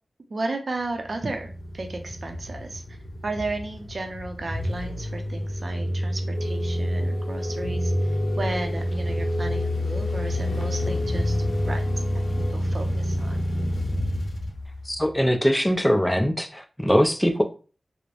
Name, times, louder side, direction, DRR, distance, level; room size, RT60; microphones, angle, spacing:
voice 1, 0.3-3.0 3.2-11.9 12.5-13.4, right 2 dB, 60° right, 5 dB, 0.6 m, -34 dB
sound 1, 0.9-15.3, equal, 80° left, 0.5 m, -28 dB
sound 2, 6.3-12.5, left 2 dB, 40° left, 0.8 m, -36 dB
voice 2, 14.9-17.4, equal, 5° left, 5 dB, 0.5 m, -22 dB
3.1 x 2.1 x 2.4 m, 0.36 s
cardioid pair, 55°, 0 cm